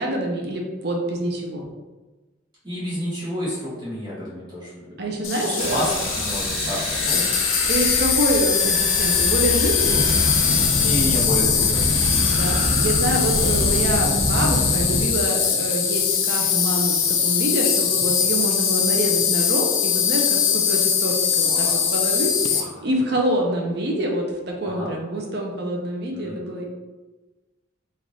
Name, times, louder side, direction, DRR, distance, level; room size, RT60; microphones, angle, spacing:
voice 1, 0.0-1.6 5.0-5.9 6.7-6.8 7.1-7.2 7.7-10.1 12.2-26.6, right 1 dB, 55° right, 0 dB, 0.6 m, -26 dB
voice 2, 2.6-7.2 10.8-12.4 21.4-22.1 22.4-22.8 24.6-24.9 26.1-26.4, equal, 25° right, -9 dB, 1.0 m, -31 dB
Insect, 5.2-22.6, left 7 dB, 85° left, 0.5 m, -21 dB
sound 1, 5.6-13.9, right 1 dB, 75° right, 1.0 m, -30 dB
sound 2, 9.8-15.0, equal, 25° left, 1.3 m, -25 dB
3.2 x 2.5 x 3.9 m, 1.2 s
head